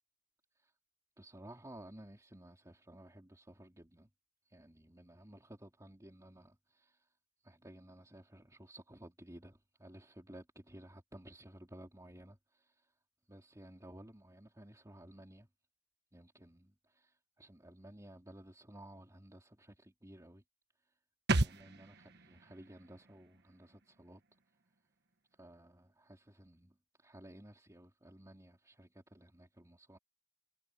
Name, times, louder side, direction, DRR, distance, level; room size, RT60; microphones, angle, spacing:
voice 1, 1.2-4.1 4.5-7.1 7.4-12.9 13.3-15.5 16.1-20.4 20.9-21.0 21.4-24.2 25.4-30.0, right 1 dB, 15° right, 3.4 m, -55 dB
sound 1, 21.3-24.8 25.1-25.2, right 2 dB, 55° right, 1.5 m, -38 dB
head